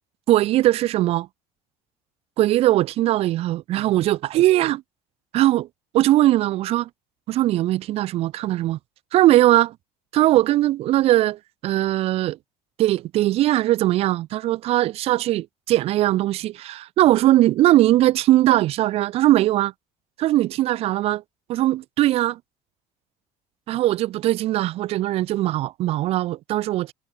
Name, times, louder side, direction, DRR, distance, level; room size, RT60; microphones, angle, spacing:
voice 1, 0.3-1.3 2.4-4.8 5.3-5.7 5.9-6.9 7.3-8.8 9.1-9.7 10.1-12.4 12.8-19.7 20.2-21.2 21.5-22.4 23.7-26.9, right 15 dB, 45° right, 1.3 m, -20 dB
cardioid pair, 180°, 15 cm